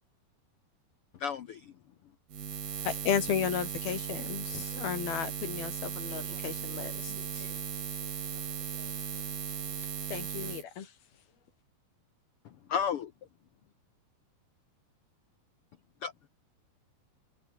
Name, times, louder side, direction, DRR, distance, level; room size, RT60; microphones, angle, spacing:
voice 1, 1.2-1.6 12.7-13.1 16.0-16.3, left 7 dB, 70° left, 1.4 m, -32 dB
Buzz, 2.3-10.6, right 7 dB, 70° right, 5.1 m, -37 dB
voice 2, 2.8-6.9 10.1-10.9, left 8 dB, 85° left, 4.6 m, -33 dB
voice 3, 6.2-7.7, right 3 dB, 45° right, 8.1 m, -58 dB
omnidirectional pair, 4.2 m